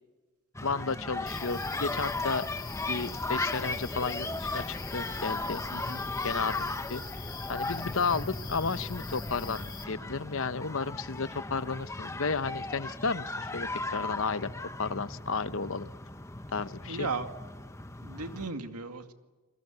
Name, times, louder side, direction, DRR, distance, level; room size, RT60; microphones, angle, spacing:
sound 1, 0.5-18.5, left 2 dB, 15° left, 0.9 m, -37 dB
voice 1, 0.6-2.4 2.9-5.6 6.2-7.0 7.5-14.5 14.8-15.9 16.5-17.1, left 4 dB, 60° left, 14 dB, 0.9 m, -33 dB
sound 2, 1.3-9.8, left 4 dB, 35° left, 2.5 m, -43 dB
voice 2, 5.7-6.0 16.9-17.3 18.0-19.1, right 3 dB, 90° right, 7 dB, 2.2 m, -36 dB
29.5 x 21.5 x 8.1 m, 1.3 s
head